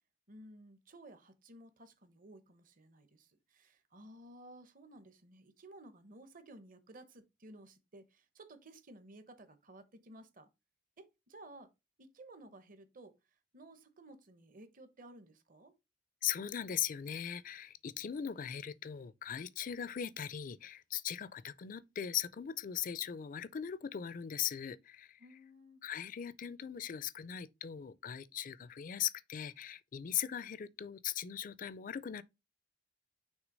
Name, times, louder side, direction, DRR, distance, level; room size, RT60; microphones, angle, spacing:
voice 1, 0.3-10.5 11.0-11.7 12.0-13.2 13.5-15.7 25.2-25.8, right 1 dB, 45° right, 0.9 m, -55 dB
voice 2, 16.2-25.2 25.8-32.2, left 9 dB, 45° left, 0.4 m, -39 dB
6.2 x 3.3 x 5.2 m
head